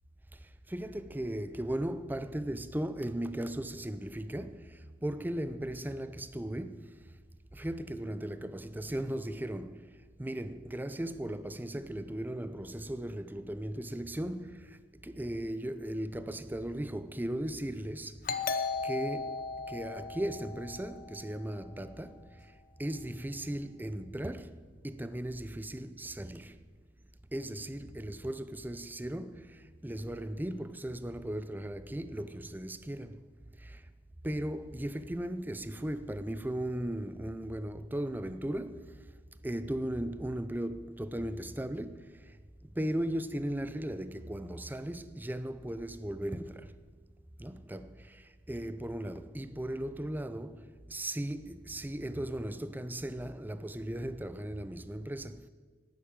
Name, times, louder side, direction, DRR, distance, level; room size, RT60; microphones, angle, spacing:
voice 1, 0.7-7.0 7.5-14.8 15.0-18.2 18.8-22.2 22.8-24.6 24.8-26.6 27.3-33.3 33.6-33.8 34.2-39.0 39.4-42.1 42.8-46.7 47.4-55.5, right 1 dB, 10° right, 0.5 m, -37 dB
Doorbell, 18.3-21.6, left 4 dB, 50° left, 0.9 m, -36 dB
11.5 x 10.0 x 8.7 m
head